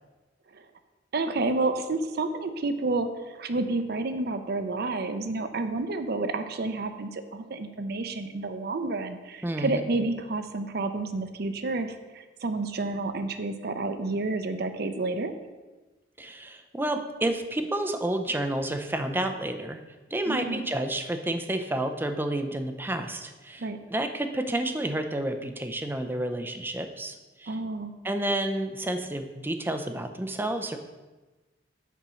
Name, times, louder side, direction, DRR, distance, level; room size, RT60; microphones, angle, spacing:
voice 1, 1.1-15.3 20.3-20.7 23.6-23.8 27.5-27.9, right 3 dB, 55° right, 8 dB, 0.6 m, -30 dB
voice 2, 9.4-9.8 16.2-19.8 20.1-27.6 28.0-30.8, right 1 dB, 10° right, 7 dB, 0.5 m, -30 dB
6.8 x 4.3 x 6.2 m, 1.2 s
head